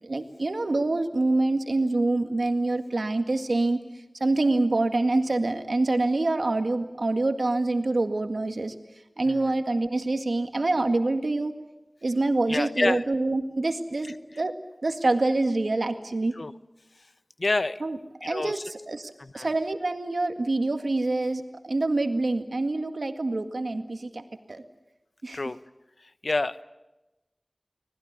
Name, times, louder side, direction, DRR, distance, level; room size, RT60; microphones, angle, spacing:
voice 1, 0.0-3.8 4.2-8.7 9.2-11.5 12.0-14.5 14.8-16.4 17.8-24.2 24.5-24.6 25.2-25.4, right 2 dB, 85° right, 7 dB, 1.9 m, -26 dB
voice 2, 12.5-13.0 16.4-16.5 17.4-17.8 18.3-18.6 19.2-19.5 25.3-25.6 26.0-26.6, left 2 dB, 75° left, 14 dB, 0.9 m, -28 dB
25.0 x 19.5 x 9.7 m, 1.0 s
wide cardioid pair, 45°, 0 cm